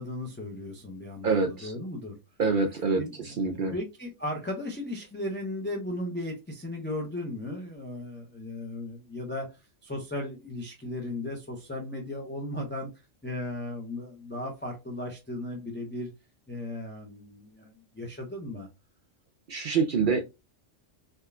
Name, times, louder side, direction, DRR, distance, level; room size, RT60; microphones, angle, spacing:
voice 1, 0.0-2.1 3.0-9.5 9.8-12.9 13.2-16.1 16.5-18.7, left 1 dB, 15° left, -1 dB, 0.5 m, -36 dB
voice 2, 1.2-1.7 2.4-3.7 19.5-20.2, right 4 dB, 65° right, 5 dB, 0.5 m, -26 dB
3.5 x 2.7 x 2.3 m, 0.25 s
omnidirectional pair, 1.3 m